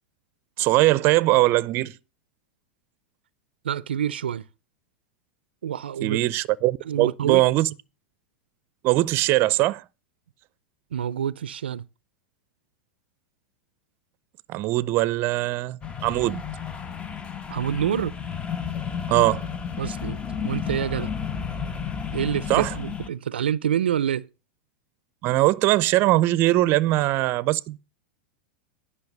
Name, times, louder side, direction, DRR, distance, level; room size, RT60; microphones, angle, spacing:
voice 1, 0.6-1.9 6.0-7.7 8.8-9.8 14.5-16.4 19.1-19.4 22.5-22.7 25.2-27.8, right 17 dB, 45° right, 0.6 m, -21 dB
voice 2, 3.6-4.5 5.6-6.2 6.8-7.4 10.9-11.8 17.5-18.1 19.8-21.1 22.1-24.3, right 9 dB, 90° right, 0.5 m, -27 dB
sound 1, 15.8-23.1, left 7 dB, 20° left, 1.0 m, -32 dB
10.5 x 5.6 x 7.3 m
hypercardioid pair, 110°, 5 cm